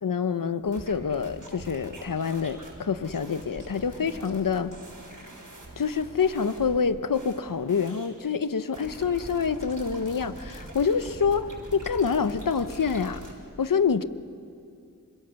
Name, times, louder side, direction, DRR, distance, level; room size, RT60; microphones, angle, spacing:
voice 1, 0.0-4.7 5.8-13.2 13.6-14.0, left 6 dB, 70° left, 12 dB, 0.8 m, -26 dB
sound 1, 0.6-8.3 8.7-13.3, right 1 dB, 65° right, 6.2 m, -43 dB
27.5 x 25.5 x 6.9 m, 2.4 s
wide cardioid pair, 50°, 34 cm